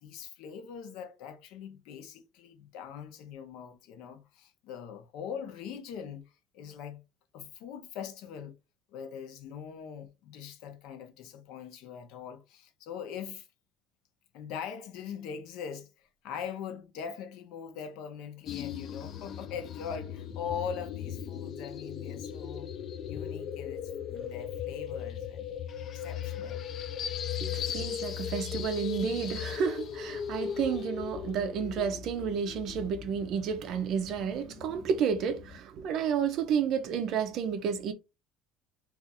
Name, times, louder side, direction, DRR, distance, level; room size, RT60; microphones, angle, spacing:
voice 1, 0.0-7.0 7.3-8.6 8.9-13.5 14.3-22.7 23.0-25.5 25.9-26.6, left 7 dB, 60° left, 0.7 m, -42 dB
sound 1, 18.5-35.6, left 8 dB, 35° left, 0.3 m, -38 dB
voice 2, 27.4-37.9, right 7 dB, 45° right, 0.4 m, -31 dB
2.5 x 2.4 x 4.0 m
cardioid pair, 160°, 0 cm